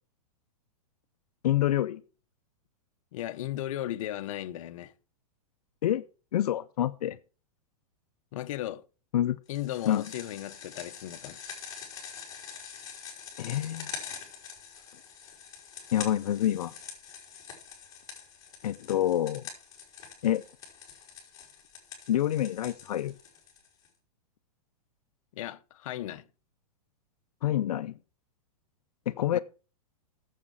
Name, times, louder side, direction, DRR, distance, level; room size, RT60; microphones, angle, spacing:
voice 1, 1.4-2.0 5.8-6.0 6.3-7.2 9.1-9.4 9.9-10.0 13.4-13.9 15.9-16.7 18.6-19.5 20.2-20.4 22.1-23.1 27.4-28.0 29.1-29.4, left 12 dB, 85° left, 0.6 m, -27 dB
voice 2, 3.1-4.9 8.3-8.8 9.5-11.4 25.3-26.2 29.3-29.4, left 13 dB, 60° left, 0.9 m, -36 dB
sound 1, 9.5-23.9, left 7 dB, 20° left, 4.0 m, -45 dB
9.7 x 7.4 x 6.1 m
supercardioid pair, 155°, 20 cm